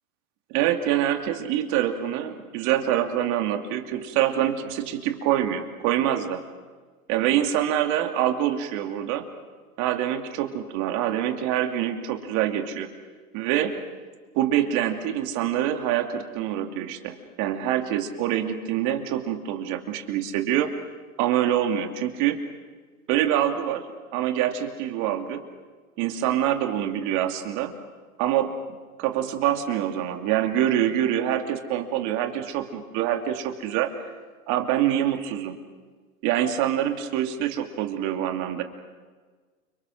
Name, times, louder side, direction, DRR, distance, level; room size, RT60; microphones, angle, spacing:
voice 1, 0.5-6.4 7.1-9.3 9.8-12.9 13.3-13.8 14.3-20.7 21.2-22.4 23.1-23.9 24.1-25.4 26.0-27.7 28.2-28.5 29.0-33.9 34.5-35.6 36.2-38.6, right 11 dB, 40° right, 6 dB, 2.7 m, -25 dB
29.5 x 25.5 x 6.2 m, 1.4 s
hypercardioid pair, 120°, 44 cm